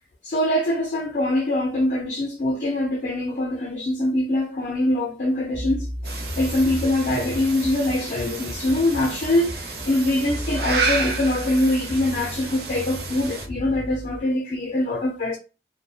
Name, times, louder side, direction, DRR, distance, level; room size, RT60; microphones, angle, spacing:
voice 1, 0.2-15.4, left 1 dB, 45° left, 0.5 m, -23 dB
sound 1, 5.5-14.2, left 1 dB, 10° left, 0.7 m, -35 dB
sound 2, 6.0-13.5, right 4 dB, 60° right, 0.6 m, -31 dB
2.5 x 2.1 x 2.3 m
head